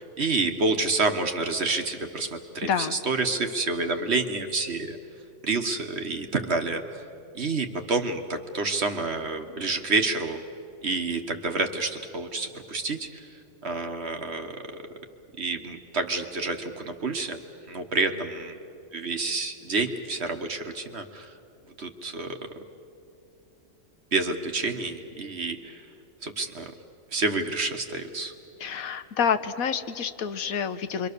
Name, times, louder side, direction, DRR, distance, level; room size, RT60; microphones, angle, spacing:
voice 1, 0.0-5.0 5.4-7.0 7.3-10.4 10.8-13.2 13.6-14.6 15.4-17.4 17.7-18.6 18.9-21.3 21.8-22.4 24.1-25.8 26.2-26.7 27.1-28.3, right 3 dB, 50° right, 6 dB, 1.6 m, -28 dB
voice 2, 2.6-3.0 28.6-31.1, left 7 dB, 85° left, 10 dB, 1.4 m, -28 dB
28.0 x 24.0 x 6.8 m, 2.6 s
omnidirectional pair, 1.4 m